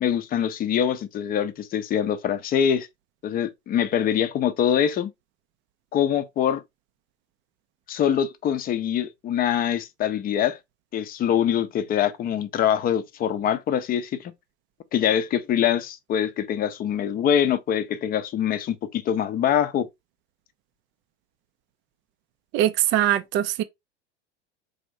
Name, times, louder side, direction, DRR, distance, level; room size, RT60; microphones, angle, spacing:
voice 1, 0.0-2.9 3.2-5.1 5.9-6.6 7.9-10.6 10.9-14.3 14.9-19.9, left 9 dB, 25° left, 0.5 m, -24 dB
voice 2, 22.5-23.6, right 12 dB, 35° right, 0.4 m, -22 dB
4.1 x 2.6 x 3.1 m
hypercardioid pair, 95°, 36 cm